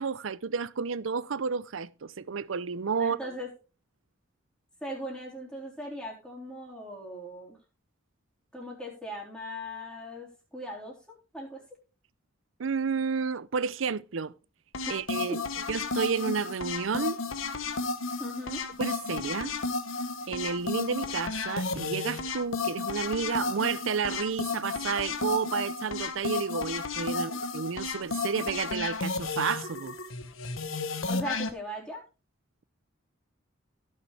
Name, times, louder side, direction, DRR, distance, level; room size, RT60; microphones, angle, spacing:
voice 1, 0.0-3.2 12.6-14.3 14.9-15.4 15.7-17.2 18.8-19.5 20.3-30.0, right 5 dB, 80° right, 0.6 m, -31 dB
voice 2, 3.0-3.5 4.8-7.6 8.5-11.6 14.9-15.0 15.3-15.6 18.2-18.6 27.1-27.4 31.1-32.0, equal, 5° left, 3.8 m, -39 dB
sound 1, 14.7-31.5, left 4 dB, 90° left, 1.2 m, -33 dB
16.0 x 6.6 x 3.4 m
head